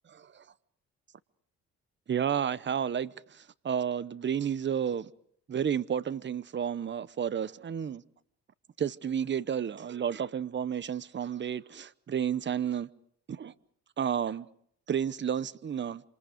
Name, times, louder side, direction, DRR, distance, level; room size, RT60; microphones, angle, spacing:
voice 1, 0.1-0.4 2.1-5.1 5.5-8.0 8.8-12.9 13.3-13.5 14.0-14.5 14.9-16.0, right 8 dB, 40° right, 0.9 m, -31 dB
27.0 x 26.0 x 5.2 m
cardioid pair, 90°, 30 cm